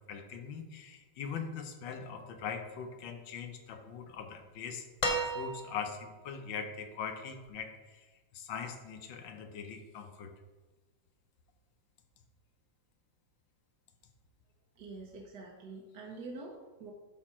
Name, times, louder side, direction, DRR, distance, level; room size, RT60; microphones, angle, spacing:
voice 1, 0.0-4.9 5.3-10.3, left 6 dB, 85° left, 6 dB, 1.6 m, -41 dB
sound 1, 5.0-6.0 7.5-7.6, right 1 dB, 40° left, 0.6 m, -33 dB
voice 2, 14.8-16.9, right 3 dB, 60° right, -1 dB, 1.4 m, -46 dB
12.0 x 4.3 x 4.3 m, 1.3 s
omnidirectional pair, 2.0 m